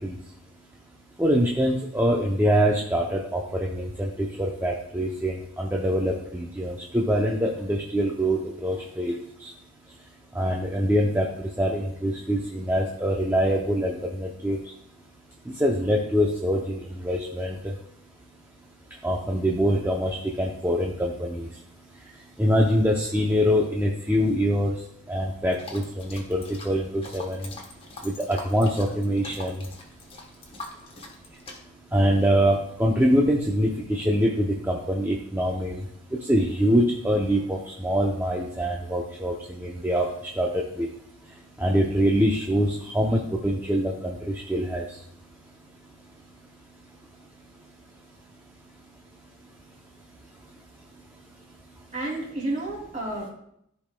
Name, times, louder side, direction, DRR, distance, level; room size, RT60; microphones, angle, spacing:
voice 1, 1.2-4.1 4.4-9.2 10.4-11.3 11.6-14.6 15.6-16.8 17.0-17.5 19.0-21.4 22.4-24.7 25.1-25.8 26.1-27.4 28.3-29.5 31.9-35.8 36.3-37.6 37.8-39.3 39.6-40.1 40.4-40.5 40.8-40.9 41.6-44.2 44.5-44.8, equal, 10° right, -2 dB, 0.6 m, -24 dB
sound 1, 25.5-31.6, left 2 dB, 25° left, 1.0 m, -43 dB
voice 2, 51.9-53.3, right 2 dB, 35° right, -3 dB, 2.6 m, -30 dB
13.5 x 5.1 x 2.2 m, 0.74 s
head